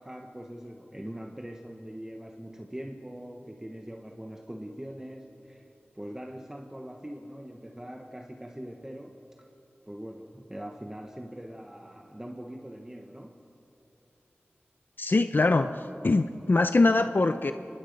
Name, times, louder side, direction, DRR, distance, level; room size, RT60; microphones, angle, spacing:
voice 1, 0.0-5.7 5.9-9.5 9.8-13.4, equal, 15° right, 3 dB, 1.2 m, -42 dB
voice 2, 15.0-15.7 16.0-17.5, left 3 dB, 55° left, 9 dB, 0.6 m, -22 dB
25.0 x 19.5 x 5.3 m, 2.8 s
wide cardioid pair, 60°, 4 cm